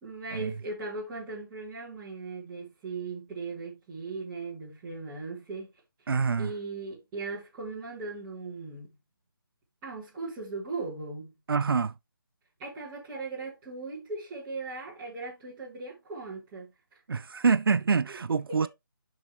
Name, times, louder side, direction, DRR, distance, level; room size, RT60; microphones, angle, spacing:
voice 1, 0.0-5.7 6.4-8.9 9.8-11.3 12.6-16.7 18.1-18.2 18.5-18.7, right 3 dB, 5° right, 1.3 m, -38 dB
voice 2, 6.1-6.5 11.5-11.9 17.1-18.7, right 5 dB, 80° right, 0.4 m, -26 dB
7.2 x 5.5 x 2.9 m
hypercardioid pair, 175°, 12 cm